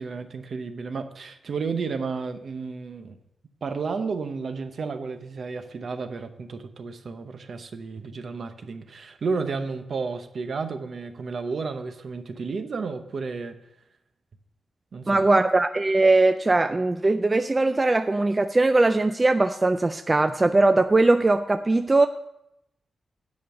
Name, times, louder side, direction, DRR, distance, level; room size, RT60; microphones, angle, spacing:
voice 1, 0.0-3.2 3.6-13.6 14.9-15.2, right 4 dB, 50° right, 8 dB, 0.8 m, -32 dB
voice 2, 15.1-22.1, right 2 dB, 20° right, 8 dB, 0.3 m, -20 dB
9.4 x 5.3 x 7.7 m, 0.84 s
wide cardioid pair, 170°, 0 cm